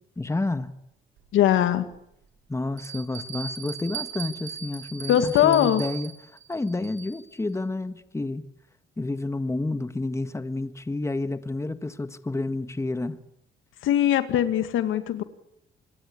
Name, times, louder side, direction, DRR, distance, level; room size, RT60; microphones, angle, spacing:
voice 1, 0.2-0.7 2.5-6.1 6.5-8.5 9.0-13.2, left 2 dB, 15° left, 1.7 m, -30 dB
Bell, 1.2-1.3 1.9-2.0 2.8-7.3, right 7 dB, 75° right, 7.8 m, -38 dB
voice 2, 1.3-1.9 5.1-5.8 13.8-15.2, left 11 dB, 80° left, 2.1 m, -21 dB
26.5 x 21.0 x 8.6 m
cardioid pair, 90°, 20 cm